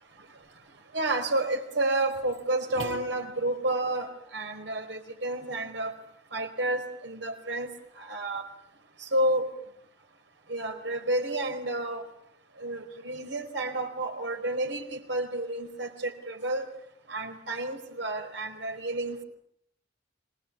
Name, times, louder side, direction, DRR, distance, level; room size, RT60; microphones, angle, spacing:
voice 1, 0.9-5.9 6.3-7.7 8.0-8.4 9.0-9.5 10.5-12.0 12.6-16.7 17.1-19.2, right 1 dB, 75° right, 6 dB, 4.6 m, -30 dB
25.0 x 21.5 x 8.7 m, 0.71 s
head